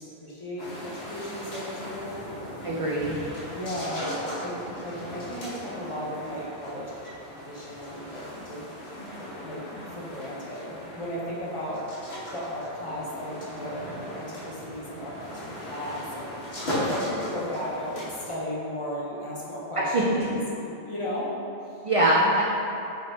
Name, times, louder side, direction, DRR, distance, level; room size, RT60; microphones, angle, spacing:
voice 1, 0.0-2.3 3.5-7.1 7.5-8.7 9.0-9.6 9.9-21.3 21.6-21.8, left 1 dB, 35° left, -7 dB, 0.6 m, -35 dB
sound 1, 0.6-18.3, equal, 90° left, 1.4 m, -37 dB
voice 2, 2.6-3.2 19.8-20.2 21.8-22.4, right 1 dB, 60° right, -4 dB, 0.3 m, -23 dB
5.6 x 2.7 x 3.3 m, 2.8 s
omnidirectional pair, 1.1 m